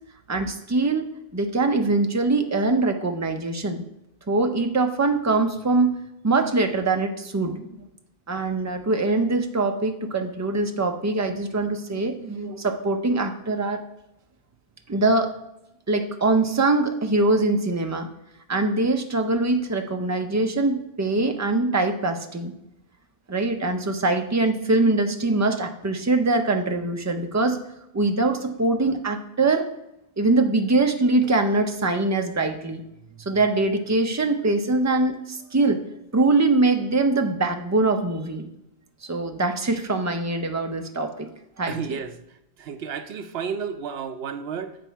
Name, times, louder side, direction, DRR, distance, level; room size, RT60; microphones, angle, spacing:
voice 1, 0.3-3.8 4.3-6.0 6.2-7.7 8.3-13.8 14.9-15.3 15.9-18.1 18.5-22.6 23.3-27.6 27.9-29.7 30.2-32.8 33.3-35.8 36.1-38.5 39.0-41.3 41.6-42.0, right 2 dB, 20° right, 6 dB, 0.4 m, -23 dB
voice 2, 41.7-42.1 42.6-44.8, right 7 dB, 70° right, 9 dB, 0.8 m, -32 dB
7.8 x 4.1 x 4.5 m, 0.84 s
omnidirectional pair, 1.1 m